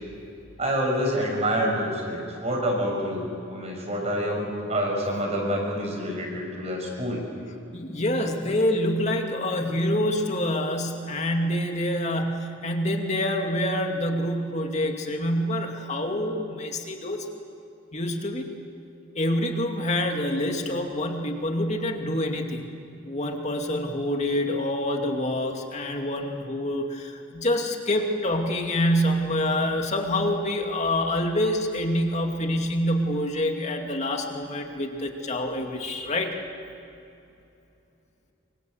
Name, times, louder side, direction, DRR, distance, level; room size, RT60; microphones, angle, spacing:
voice 1, 0.6-7.2, equal, 35° right, 0 dB, 6.3 m, -27 dB
voice 2, 7.7-17.3 17.9-18.5 19.1-22.7 23.1-36.3, left 1 dB, 35° left, 3 dB, 2.5 m, -26 dB
27.0 x 25.0 x 8.0 m, 2.7 s
head